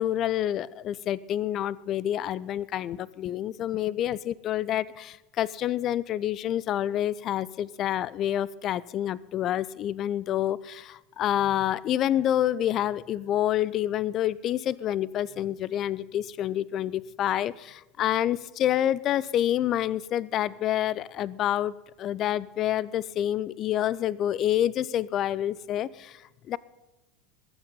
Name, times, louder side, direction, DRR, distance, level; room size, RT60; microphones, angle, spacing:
voice 1, 0.0-26.6, left 11 dB, 40° left, 21 dB, 0.6 m, -28 dB
21.5 x 9.2 x 5.5 m, 1.1 s
figure-of-eight pair, 80°, 0 cm